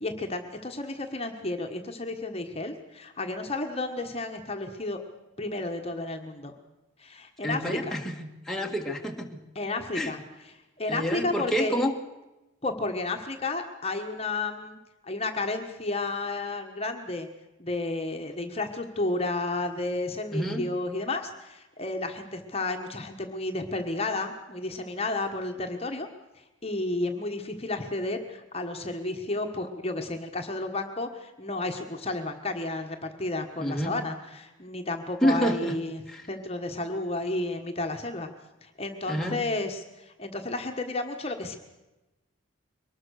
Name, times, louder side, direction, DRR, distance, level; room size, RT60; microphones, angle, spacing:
voice 1, 0.0-5.0 5.4-6.5 7.0-8.0 9.5-10.2 10.5-11.7 12.6-14.8 15.0-17.3 17.6-26.1 26.4-36.0 36.3-38.3 38.6-41.6, left 2 dB, 30° left, 4 dB, 1.4 m, -32 dB
voice 2, 7.4-9.4 9.9-10.1 10.9-11.9 20.3-20.7 33.6-33.9 35.2-35.8 36.1-36.3 39.1-39.4, equal, ahead, 0 dB, 1.7 m, -28 dB
23.0 x 20.0 x 6.5 m, 1.0 s
head